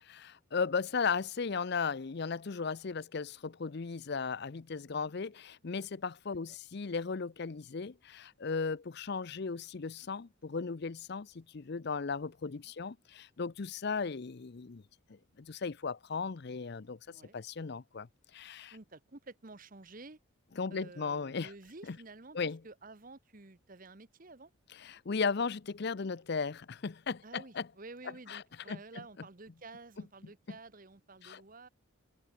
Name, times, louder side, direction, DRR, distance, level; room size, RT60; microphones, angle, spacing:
voice 1, 0.1-14.8 15.1-18.8 20.6-21.5 21.9-22.0 22.3-22.6 24.7-27.7 28.3-28.4 28.7-28.8 30.5-30.6 31.2-31.4, left 5 dB, 50° left, 0.5 m, -36 dB
voice 2, 17.1-17.4 18.7-20.2 20.7-24.5 27.2-31.7, right 3 dB, 40° right, 1.2 m, -51 dB
head